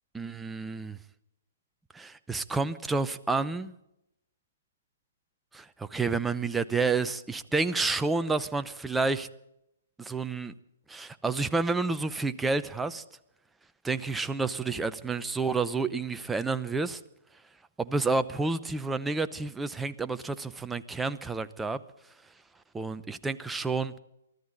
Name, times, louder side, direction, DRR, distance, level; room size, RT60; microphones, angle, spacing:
voice 1, 0.1-1.0 1.9-3.7 5.5-9.3 10.0-10.5 10.9-13.0 13.8-17.0 17.8-21.8 22.7-23.9, right 3 dB, 5° right, 12 dB, 0.8 m, -30 dB
24.0 x 14.5 x 4.0 m, 0.82 s
figure-of-eight pair, 125°, 0 cm